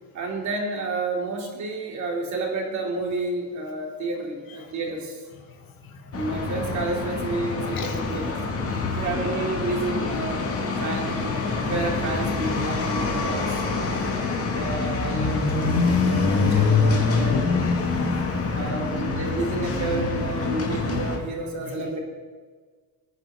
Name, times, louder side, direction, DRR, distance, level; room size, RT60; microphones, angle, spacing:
voice 1, 0.1-5.3 6.1-8.4 8.9-10.5 10.8-13.6 14.5-17.4 18.5-22.0, right 2 dB, 40° right, 0 dB, 2.9 m, -30 dB
voice 2, 5.5-6.2 7.6-8.0 8.8-9.0 13.9-14.3 17.8-18.7 21.7-21.8, left 5 dB, 45° left, 3 dB, 1.9 m, -43 dB
sound 1, 6.1-21.2, left 4 dB, 30° left, 2.1 m, -25 dB
18.5 x 9.6 x 3.7 m, 1.5 s
cardioid pair, 130°, 46 cm